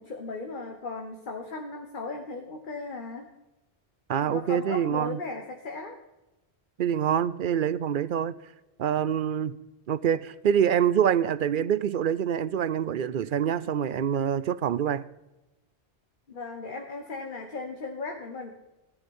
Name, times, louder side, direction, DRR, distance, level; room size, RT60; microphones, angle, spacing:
voice 1, 0.0-3.3 4.3-6.0 16.3-18.5, left 3 dB, 50° left, 1.5 m, -36 dB
voice 2, 4.1-5.2 6.8-8.3 8.8-9.6 9.9-15.1, right 9 dB, 55° right, 0.7 m, -25 dB
16.0 x 12.5 x 4.4 m
omnidirectional pair, 1.1 m